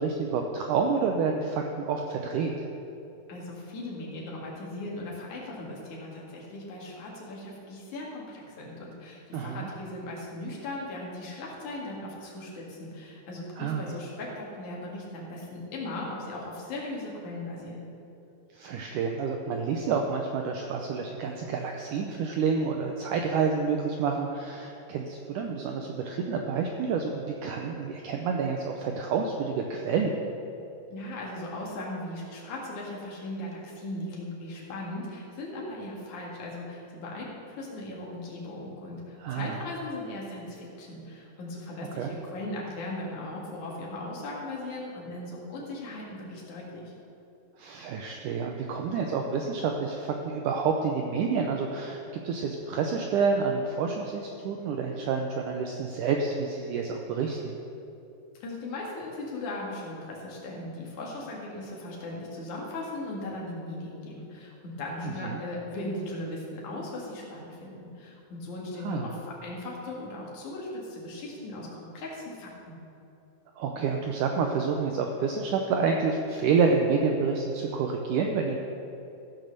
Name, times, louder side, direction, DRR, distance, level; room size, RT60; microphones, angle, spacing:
voice 1, 0.0-2.5 9.3-9.7 13.6-13.9 18.5-30.2 39.2-39.6 41.9-42.1 47.6-57.6 65.0-65.4 68.8-69.1 73.6-78.6, right 5 dB, 90° right, 2 dB, 1.8 m, -28 dB
voice 2, 3.3-17.8 30.9-46.9 58.4-72.7, left 2 dB, 55° left, -3 dB, 3.2 m, -38 dB
15.5 x 6.2 x 6.7 m, 2.9 s
omnidirectional pair, 4.5 m